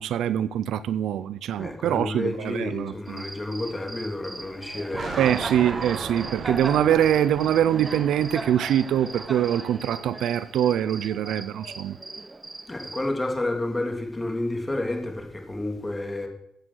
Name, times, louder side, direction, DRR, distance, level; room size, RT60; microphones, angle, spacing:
voice 1, 0.0-3.2 5.2-12.0, right 10 dB, 75° right, 0.6 m, -24 dB
voice 2, 1.6-5.3 12.7-16.3, left 2 dB, 15° left, 3.3 m, -30 dB
Cricket, 3.1-13.1, right 2 dB, 20° right, 1.1 m, -38 dB
sound 1, 4.9-9.8, right 6 dB, 60° right, 1.4 m, -38 dB
14.5 x 8.2 x 6.4 m
cardioid pair, 90°, 0 cm